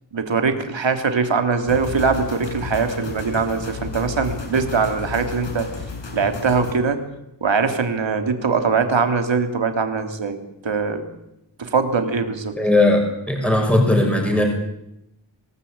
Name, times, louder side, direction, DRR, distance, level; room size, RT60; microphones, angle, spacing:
voice 1, 0.1-5.7 6.1-7.0 7.4-10.4 10.6-11.0 11.6-12.6, right 5 dB, 75° right, 6 dB, 3.2 m, -22 dB
sound 1, 1.7-6.7, left 4 dB, 70° left, 6.3 m, -32 dB
voice 2, 12.6-14.5, left 1 dB, 5° left, 2 dB, 6.3 m, -18 dB
26.5 x 18.5 x 8.8 m, 0.87 s
wide cardioid pair, 90°, 45 cm